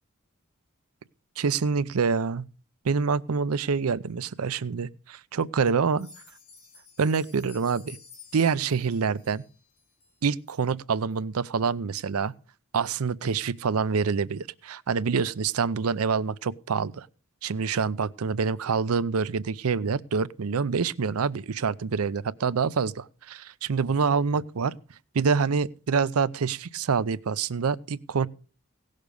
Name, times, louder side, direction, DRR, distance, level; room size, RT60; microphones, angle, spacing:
voice 1, 1.4-2.4 2.8-6.1 7.0-8.0 8.3-9.4 10.2-12.3 12.7-17.1 17.4-24.8 25.1-28.3, right 5 dB, 90° right, 0.6 m, -26 dB
sound 1, 5.9-10.6 11.1-11.2 11.6-11.7 12.2-12.3, left 5 dB, 80° left, 3.7 m, -52 dB
17.0 x 6.6 x 5.2 m
head